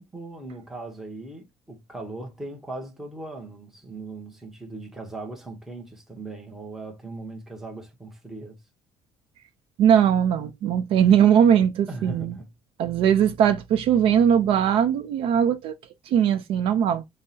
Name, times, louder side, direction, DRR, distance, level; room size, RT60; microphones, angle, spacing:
voice 1, 0.0-8.6 11.9-12.5 16.9-17.0, right 2 dB, 5° right, 0.9 m, -39 dB
voice 2, 9.8-12.4 12.8-15.7 16.1-17.0, right 9 dB, 55° right, 0.5 m, -20 dB
5.4 x 2.1 x 2.7 m
cardioid pair, 175°, 11 cm